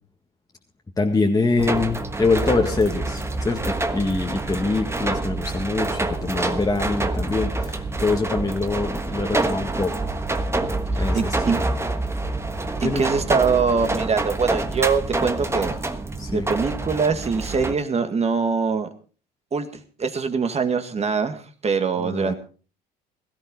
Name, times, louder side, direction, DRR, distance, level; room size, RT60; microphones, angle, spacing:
voice 1, 1.0-9.9 10.9-11.6 12.8-13.1 16.2-16.5 22.0-22.3, left 3 dB, 15° left, 1 dB, 1.8 m, -24 dB
sound 1, 1.6-17.7, right 2 dB, 15° right, 1.4 m, -27 dB
voice 2, 10.9-11.6 12.8-15.7 16.3-18.9 19.5-19.7 20.0-22.3, right 5 dB, 30° right, 8 dB, 2.0 m, -23 dB
17.0 x 13.5 x 4.0 m, 0.37 s
supercardioid pair, 85°, 20 cm